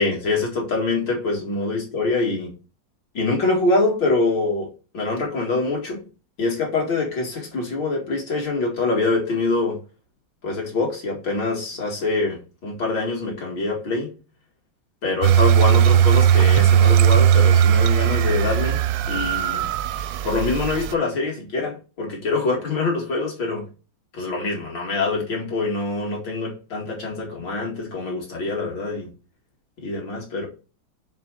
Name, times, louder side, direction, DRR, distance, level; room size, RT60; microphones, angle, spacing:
voice 1, 0.0-2.5 3.1-4.7 4.9-6.0 6.4-9.8 10.4-14.1 15.0-18.8 19.1-19.6 20.2-23.6 24.1-29.1 29.8-30.5, left 3 dB, 80° left, 2.9 m, -24 dB
sound 1, 15.2-20.9, right 9 dB, 70° right, 0.9 m, -17 dB
6.6 x 3.7 x 6.1 m
omnidirectional pair, 2.0 m